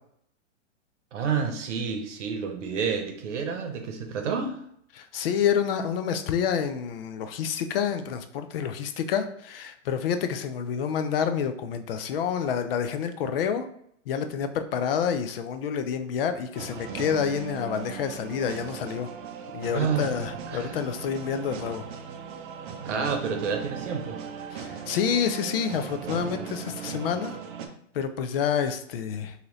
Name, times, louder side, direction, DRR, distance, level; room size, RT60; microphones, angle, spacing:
voice 1, 1.1-4.6 19.7-20.0 20.5-20.8 22.8-24.2, right 6 dB, 70° right, 5 dB, 0.9 m, -29 dB
voice 2, 4.9-13.7 14.1-19.1 19.5-21.8 24.5-27.4 27.9-29.3, left 7 dB, 50° left, 9 dB, 0.4 m, -28 dB
Epic chorus-song (no flangerfx problem in cell phones), 16.5-27.7, right 7 dB, 40° right, 0.5 m, -38 dB
2.9 x 2.8 x 3.8 m, 0.68 s
hypercardioid pair, 135°, 38 cm